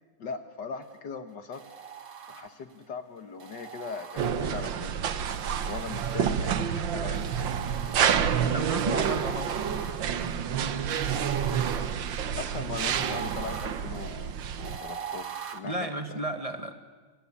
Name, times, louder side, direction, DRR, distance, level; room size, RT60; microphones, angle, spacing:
voice 1, 0.2-1.6 2.3-5.0 5.6-7.7 12.4-16.2, left 5 dB, 60° left, 8 dB, 1.9 m, -39 dB
sound 1, 1.5-2.8 3.4-4.7 5.3-6.6 7.1-8.5 9.0-15.6, right 7 dB, 45° right, 1.7 m, -42 dB
sound 2, 4.2-14.8, right 8 dB, 70° right, 1.8 m, -29 dB
voice 2, 8.5-10.0 15.6-16.7, right 1 dB, 20° right, 7 dB, 1.7 m, -33 dB
29.5 x 23.5 x 8.6 m, 1.4 s
omnidirectional pair, 2.2 m